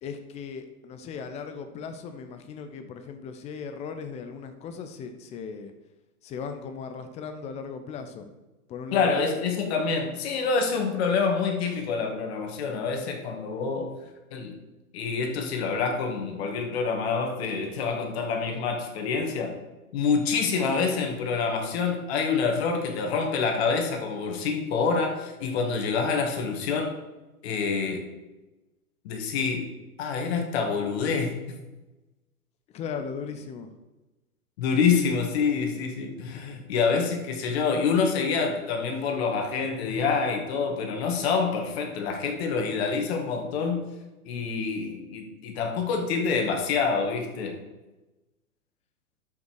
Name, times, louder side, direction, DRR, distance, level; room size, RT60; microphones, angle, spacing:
voice 1, 0.0-5.7 6.2-8.3 8.7-9.2 32.7-33.7, left 6 dB, 15° left, 8 dB, 0.7 m, -37 dB
voice 2, 8.9-13.9 14.3-14.6 14.9-19.6 19.9-27.0 27.4-28.1 29.0-29.7 30.0-31.4 34.6-43.9 44.3-47.6, left 5 dB, 45° left, 3 dB, 2.1 m, -27 dB
12.5 x 5.9 x 4.7 m, 1.1 s
figure-of-eight pair, 115°, 45 cm